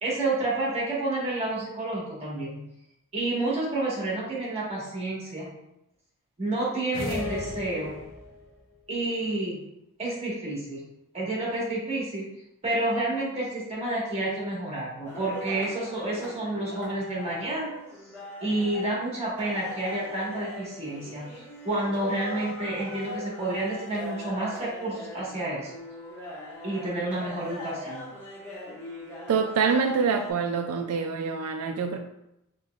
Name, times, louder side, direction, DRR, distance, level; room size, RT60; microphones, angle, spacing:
voice 1, 0.0-2.6 3.1-5.5 6.4-7.9 8.9-9.6 10.0-10.9 11.1-12.3 12.6-17.7 18.4-21.2 21.6-25.7 26.6-28.0, right 2 dB, 30° right, -5 dB, 1.5 m, -29 dB
sound 1, 6.9-8.5, left 2 dB, 60° left, 0.7 m, -34 dB
sound 2, 15.0-30.3, left 1 dB, 10° left, 1.4 m, -41 dB
voice 2, 29.3-32.0, right 5 dB, 80° right, 5 dB, 0.3 m, -25 dB
5.7 x 3.0 x 2.4 m, 0.86 s
head